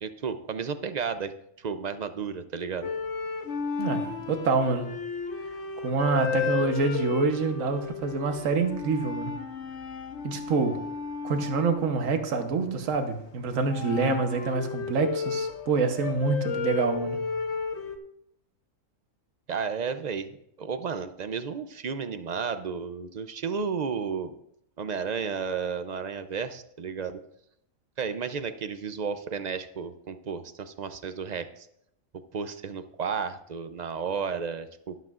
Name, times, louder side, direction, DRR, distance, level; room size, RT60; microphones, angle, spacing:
voice 1, 0.0-2.9 19.5-24.4 24.8-27.2 28.0-31.7 32.1-35.0, right 6 dB, 50° right, 10 dB, 0.5 m, -33 dB
sound 1, 2.8-13.0 13.6-18.0, left 5 dB, 60° left, 1.2 m, -33 dB
voice 2, 3.8-5.0 5.8-9.4 10.2-10.8 11.2-17.3, right 4 dB, 75° right, 6 dB, 1.4 m, -27 dB
13.5 x 11.5 x 2.5 m, 0.76 s
omnidirectional pair, 1.4 m